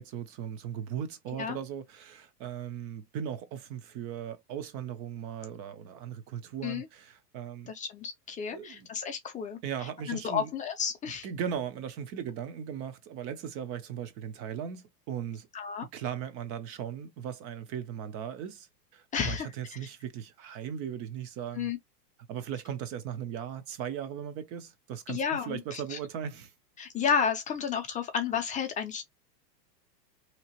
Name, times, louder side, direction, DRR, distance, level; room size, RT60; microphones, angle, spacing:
voice 1, 0.0-7.7 8.5-8.9 9.6-10.5 11.2-15.5 15.9-18.7 18.9-21.7 22.3-26.5, right 8 dB, 30° right, 0.5 m, -38 dB
voice 2, 7.7-9.6 10.1-11.3 15.5-15.9 19.1-19.5 21.5-21.8 25.1-26.0 26.8-29.0, left 7 dB, 15° left, 0.5 m, -31 dB
2.9 x 2.9 x 2.9 m
supercardioid pair, 130°, 50 cm